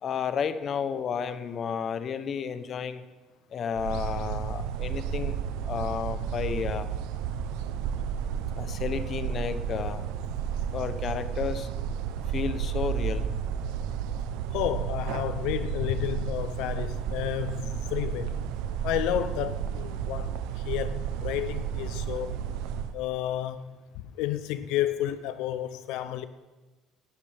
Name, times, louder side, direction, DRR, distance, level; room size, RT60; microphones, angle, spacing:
voice 1, 0.0-3.0 3.5-6.9 8.5-10.0 10.7-11.7 12.3-13.3, left 7 dB, 45° left, 0.8 m, -32 dB
sound 1, 3.7-22.9, right 8 dB, 90° right, 0.7 m, -32 dB
voice 2, 14.5-18.4 18.8-22.4 22.9-23.8 24.1-26.3, left 12 dB, 80° left, 0.5 m, -31 dB
17.5 x 11.0 x 3.4 m
cardioid pair, 125°, 0 cm